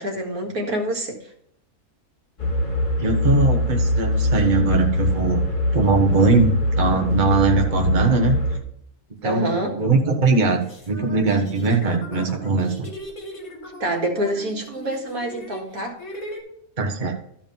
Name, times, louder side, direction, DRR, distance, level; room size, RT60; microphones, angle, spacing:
voice 1, 0.0-1.3 9.2-9.9 13.8-16.0, right 1 dB, 70° right, 2 dB, 2.2 m, -26 dB
sound 1, 2.4-8.6, left 1 dB, 35° left, 2.1 m, -22 dB
voice 2, 3.0-5.4 5.7-8.4 9.2-10.6 10.9-12.9 16.8-17.1, right 3 dB, 35° right, 2 dB, 1.4 m, -20 dB
sound 2, 9.2-9.3 10.0-16.4, left 1 dB, 65° left, 2.8 m, -39 dB
13.0 x 5.0 x 5.4 m, 0.72 s
omnidirectional pair, 1.6 m